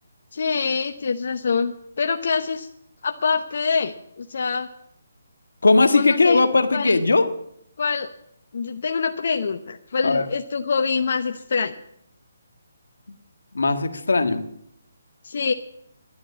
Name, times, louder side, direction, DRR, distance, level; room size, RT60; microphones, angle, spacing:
voice 1, 0.3-2.7 3.0-4.7 5.9-6.4 6.7-7.0 7.8-8.1 8.5-11.7 15.2-15.5, left 5 dB, 60° left, 6 dB, 0.8 m, -25 dB
voice 2, 5.6-7.3 10.0-10.2 13.5-14.4, left 3 dB, 85° left, 7 dB, 1.6 m, -18 dB
11.5 x 10.5 x 8.5 m, 0.74 s
hypercardioid pair, 155°, 0 cm